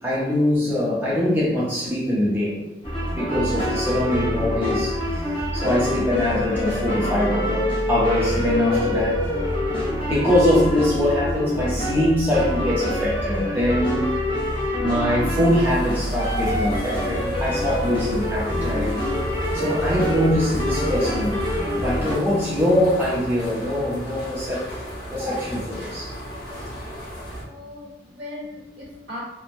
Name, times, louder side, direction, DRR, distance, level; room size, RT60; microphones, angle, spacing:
voice 1, 0.0-2.6 3.2-9.2 10.0-14.1 14.8-19.0 19.5-21.5 21.7-24.7 25.1-26.1, left 1 dB, 10° right, -8 dB, 0.5 m, -23 dB
sound 1, 2.8-22.2, left 1 dB, 30° left, 0.8 m, -25 dB
sound 2, 15.4-27.4, equal, 55° left, 1.1 m, -35 dB
voice 2, 27.4-29.2, left 2 dB, 65° right, -6 dB, 1.2 m, -38 dB
3.1 x 2.1 x 2.5 m, 0.95 s
head